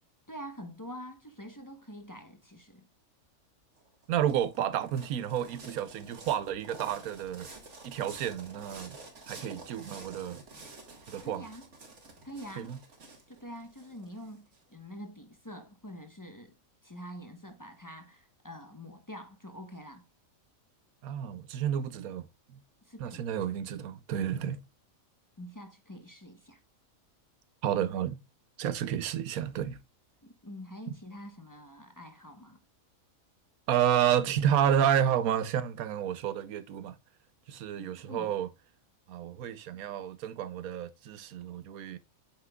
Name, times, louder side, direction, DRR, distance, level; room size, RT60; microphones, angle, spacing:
voice 1, 0.3-2.9 11.2-11.7 12.2-12.7 13.3-16.5 16.8-20.1 22.8-23.4 25.4-26.6 30.2-32.6 37.7-38.3, equal, 15° left, 0.9 m, -46 dB
sound 1, 3.8-14.6, right 3 dB, 55° right, 2.0 m, -49 dB
voice 2, 4.1-7.5 7.8-9.0 9.3-10.4 11.1-11.4 12.6-12.8 21.0-22.6 23.0-24.6 27.6-28.2 28.6-29.8 33.7-37.0 37.5-38.5 39.1-42.0, right 9 dB, 90° right, 1.1 m, -30 dB
8.6 x 5.9 x 2.3 m
omnidirectional pair, 1.5 m